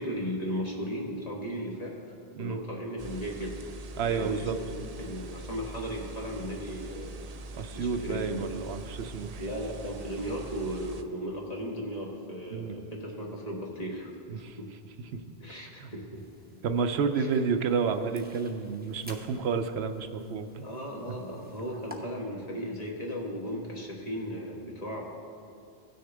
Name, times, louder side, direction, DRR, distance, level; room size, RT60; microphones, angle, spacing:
voice 1, 0.0-2.0 2.4-3.6 4.1-7.3 7.7-8.6 9.4-14.1 14.6-14.7 15.4-16.2 17.1-17.4 20.6-25.0, equal, 40° left, -2 dB, 1.5 m, -36 dB
sound 1, 3.0-11.0, right 2 dB, 45° right, 0.5 m, -43 dB
voice 2, 4.0-4.6 7.5-9.4 12.5-12.8 14.3-14.6 15.1-15.2 15.8-15.9 16.6-20.7 21.1-21.2, right 5 dB, 80° right, 8 dB, 0.9 m, -30 dB
sound 2, 16.2-22.0, left 1 dB, 10° right, 0.8 m, -53 dB
17.0 x 6.4 x 3.4 m, 2.7 s
omnidirectional pair, 1.1 m